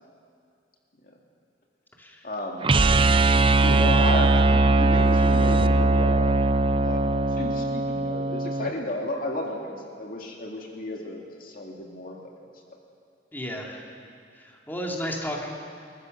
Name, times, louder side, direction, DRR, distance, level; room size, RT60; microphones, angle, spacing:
voice 1, 2.2-2.7 3.3-6.3 6.8-7.0 7.3-12.3 12.7-12.8, left 1 dB, 50° left, 0 dB, 2.3 m, -33 dB
sound 1, 2.6-8.7, right 2 dB, 30° right, 0.5 m, -20 dB
voice 2, 13.3-13.9 14.3-15.5, equal, 10° left, -1 dB, 2.6 m, -33 dB
30.0 x 14.5 x 6.6 m, 2.4 s
head